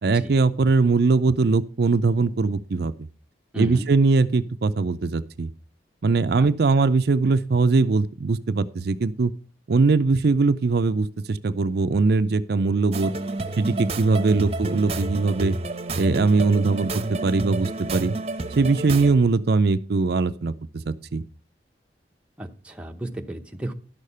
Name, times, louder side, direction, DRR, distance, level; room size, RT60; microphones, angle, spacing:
voice 1, 0.0-3.1 3.5-5.5 6.0-9.3 9.7-13.1 13.6-15.6 16.0-16.9 17.2-18.1 18.5-20.5 20.9-21.2, right 3 dB, 60° right, 11 dB, 0.5 m, -21 dB
voice 2, 3.5-3.9 6.4-6.5 14.3-14.5 22.4-23.7, right 1 dB, 5° right, 3 dB, 0.8 m, -34 dB
sound 1, 12.9-19.1, right 2 dB, 35° right, 0.8 m, -30 dB
11.5 x 6.6 x 5.5 m, 0.40 s
head